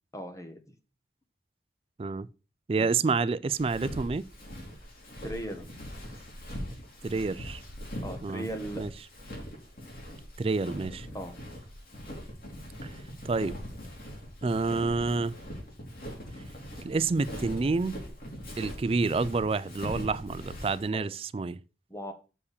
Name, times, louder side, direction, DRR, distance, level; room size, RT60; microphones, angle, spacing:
voice 1, 0.1-0.6 5.2-5.6 8.0-8.8 11.1-11.3 20.9-21.0 21.9-22.1, right 1 dB, 20° left, 1.3 m, -37 dB
voice 2, 2.7-4.3 7.0-7.6 8.2-8.5 8.8-8.9 10.4-11.1 12.8-12.9 13.2-13.6 14.4-15.4 16.8-18.0 18.6-21.6, right 4 dB, 30° right, 0.3 m, -28 dB
Walk footsteps, 3.5-20.9, equal, 55° left, 3.5 m, -41 dB
7.1 x 4.7 x 6.5 m
head